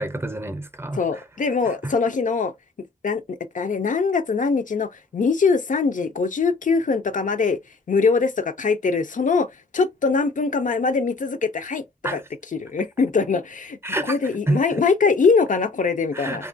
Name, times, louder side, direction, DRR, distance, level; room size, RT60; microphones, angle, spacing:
voice 1, 0.0-1.0 1.8-1.9 12.0-12.2 13.8-14.2 14.5-14.6 16.1-16.5, right 1 dB, 15° right, 0.5 m, -27 dB
voice 2, 0.9-2.5 3.0-7.6 7.9-9.5 9.7-11.8 12.1-12.2 12.6-13.8 14.1-16.4, left 4 dB, 65° left, 0.4 m, -22 dB
3.0 x 2.2 x 2.5 m
wide cardioid pair, 70°, 14 cm